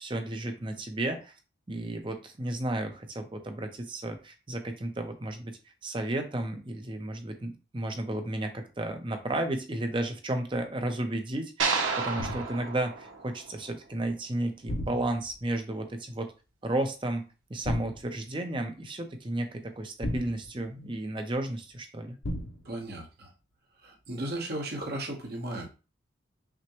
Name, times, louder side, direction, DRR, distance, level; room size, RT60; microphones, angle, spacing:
voice 1, 0.0-1.3 1.7-5.5 5.8-16.3 16.6-22.2, right 1 dB, 25° right, 6 dB, 0.6 m, -33 dB
sound 1, 11.6-13.9, right 4 dB, 85° right, 0.8 m, -31 dB
sound 2, 12.2-12.7 14.7-15.4 17.6-18.2 20.0-20.9 22.2-22.8, left 1 dB, 75° left, 0.7 m, -35 dB
voice 2, 22.6-23.3 23.8-25.7, right 1 dB, 50° right, 0 dB, 1.1 m, -35 dB
5.9 x 2.1 x 3.0 m, 0.32 s
head